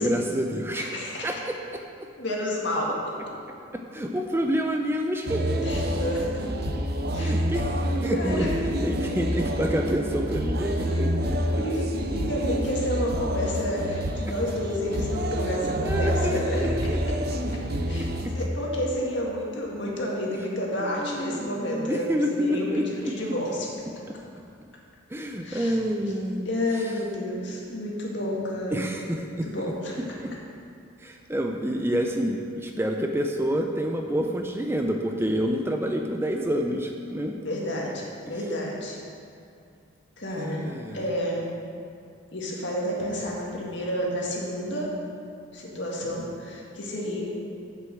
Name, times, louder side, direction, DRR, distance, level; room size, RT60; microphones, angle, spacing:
voice 1, 0.0-1.5 3.9-5.9 7.2-8.5 8.8-11.1 15.8-17.0 20.8-23.1 24.1-24.2 25.1-26.5 28.7-29.5 30.0-30.3 31.0-37.3 38.3-38.4 40.4-41.0, equal, 10° right, 3 dB, 0.5 m, -28 dB
voice 2, 0.8-1.3 2.2-3.0 5.6-6.2 7.1-7.3 8.1-8.5 10.9-11.0 11.6-11.8 12.1-16.7 17.9-18.1 18.3-23.7 25.4-25.8 26.5-28.8 29.2-30.0 37.4-39.0 40.2-41.4 42.3-44.9 45.5-47.2, equal, 60° left, -3 dB, 2.0 m, -30 dB
sound 1, 5.3-18.5, equal, 50° right, 0.7 m, -28 dB
7.7 x 6.9 x 7.7 m, 2.4 s
head